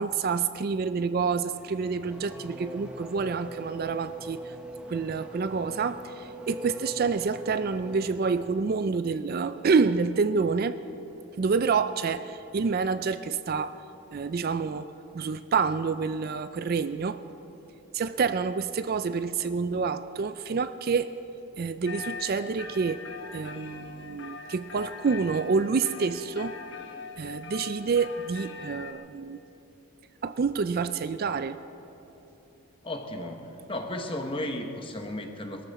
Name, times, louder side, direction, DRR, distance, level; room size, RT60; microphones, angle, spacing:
voice 1, 0.0-4.5 4.9-10.8 11.4-13.8 14.1-17.2 17.9-21.1 21.6-23.0 23.3-26.5 27.2-29.4 30.2-31.6, right 5 dB, 45° right, 12 dB, 0.3 m, -28 dB
Race car auto racing / Accelerating revving vroom, 1.5-8.8, right 1 dB, 5° right, 0.9 m, -42 dB
sound 1, 21.9-28.9, left 5 dB, 55° left, 1.0 m, -42 dB
voice 2, 32.8-35.6, left 1 dB, 25° left, 5 dB, 1.0 m, -34 dB
22.0 x 13.5 x 4.2 m, 3.0 s
head